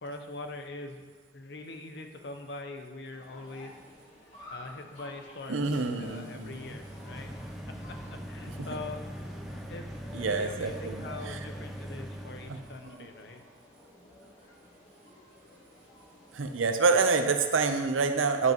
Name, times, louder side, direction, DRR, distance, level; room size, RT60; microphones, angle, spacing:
voice 1, 0.0-3.8 4.5-5.7 6.0-7.3 7.7-13.4, left 2 dB, 60° left, 5 dB, 0.7 m, -43 dB
sound 1, 3.1-17.8, left 1 dB, 35° left, 2.4 m, -52 dB
voice 2, 5.5-6.6 8.6-8.7 10.1-11.4 12.5-12.6 16.3-18.5, right 4 dB, 85° right, 7 dB, 0.6 m, -27 dB
sound 2, 6.3-12.9, equal, ahead, 0.5 m, -41 dB
11.0 x 5.9 x 3.0 m, 1.4 s
head